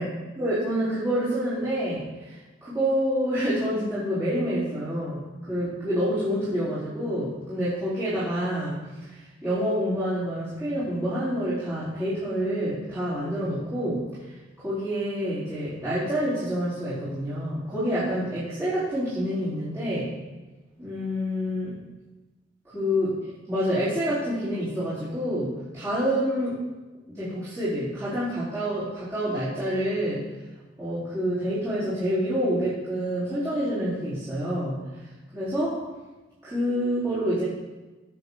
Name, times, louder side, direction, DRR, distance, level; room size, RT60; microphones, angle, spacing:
voice 1, 0.4-2.4 2.6-5.2 5.5-14.0 14.6-20.1 20.8-21.7 22.7-26.6 27.1-30.2 30.8-34.8 35.3-35.8 36.4-37.4, equal, 15° right, -14 dB, 4.4 m, -27 dB
18.0 x 7.6 x 4.1 m, 1.2 s
head